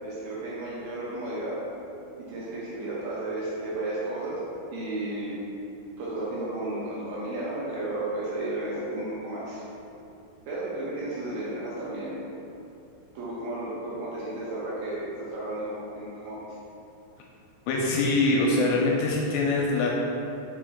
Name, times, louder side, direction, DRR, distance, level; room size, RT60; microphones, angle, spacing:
voice 1, 0.0-1.6 2.3-4.4 4.7-5.4 6.0-9.6 10.5-12.2 13.1-16.4, right 2 dB, 70° right, -8 dB, 2.5 m, -33 dB
voice 2, 17.7-19.9, left 2 dB, 85° left, -2 dB, 2.6 m, -23 dB
6.0 x 5.4 x 3.6 m, 2.7 s
omnidirectional pair, 5.3 m